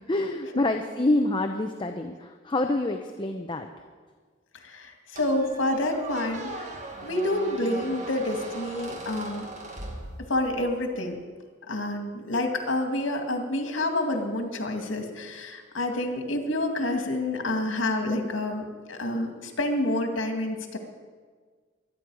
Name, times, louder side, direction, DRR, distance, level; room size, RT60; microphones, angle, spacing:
voice 1, 0.1-3.7, left 2 dB, 25° left, 5 dB, 0.7 m, -27 dB
voice 2, 4.5-9.5 10.2-11.2 11.7-20.8, left 1 dB, 85° left, 4 dB, 2.1 m, -28 dB
Squeak, 5.2-10.7, right 2 dB, 40° right, 1.9 m, -39 dB
24.0 x 9.5 x 4.8 m, 1.6 s
head